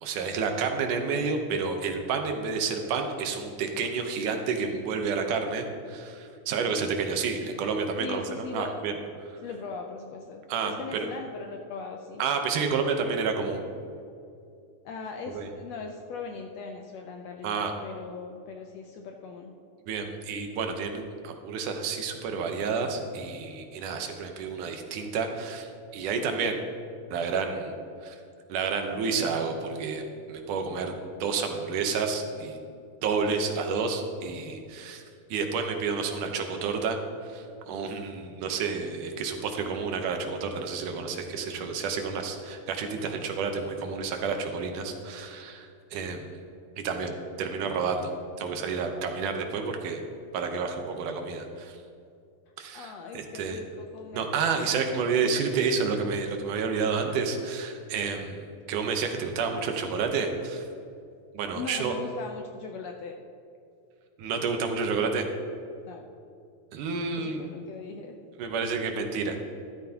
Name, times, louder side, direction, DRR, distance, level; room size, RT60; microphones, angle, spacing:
voice 1, 0.0-9.0 9.3-9.4 10.5-11.1 12.2-13.6 15.3-15.5 17.4-17.7 19.9-26.6 27.1-27.8 28.0-28.2 28.5-30.0 30.3-30.9 31.2-32.6 33.0-35.0 35.3-46.3 46.8-47.1 47.4-48.1 48.4-50.0 50.3-51.8 52.6-53.6 54.1-60.7 61.3-61.9 64.2-65.2 66.7-67.4 68.4-69.4, right 5 dB, 80° right, 4 dB, 2.5 m, -30 dB
voice 2, 8.0-8.8 9.4-12.2 14.8-19.5 52.7-54.3 61.5-63.2 65.9-66.0 67.2-68.1, left 5 dB, 75° left, 3 dB, 1.6 m, -39 dB
13.0 x 13.0 x 2.9 m, 2.5 s
omnidirectional pair, 3.6 m